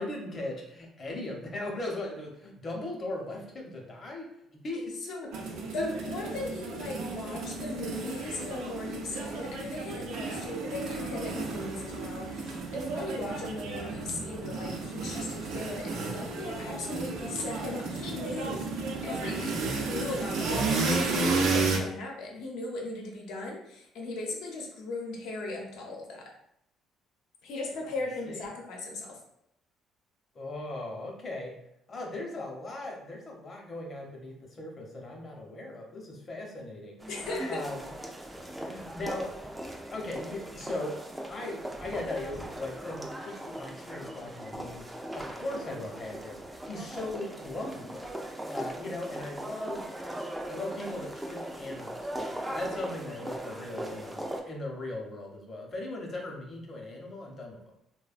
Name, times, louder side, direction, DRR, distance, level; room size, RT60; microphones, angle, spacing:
voice 1, 0.0-5.3 5.8-6.4 28.3-28.4 30.3-31.6 31.9-37.1 37.5-37.9 38.6-39.5 39.9-48.1 48.5-49.9 50.4-57.6, left 2 dB, 35° left, 0 dB, 0.7 m, -38 dB
sound 1, 5.3-21.8, right 3 dB, 75° right, 0.5 m, -33 dB
voice 2, 5.7-26.3 27.4-29.2 37.1-37.6, left 2 dB, 80° left, 0 dB, 0.7 m, -38 dB
sound 2, 37.0-54.4, right 1 dB, 10° right, 0.3 m, -39 dB
3.1 x 2.1 x 2.4 m, 0.78 s
cardioid pair, 115°, 0 cm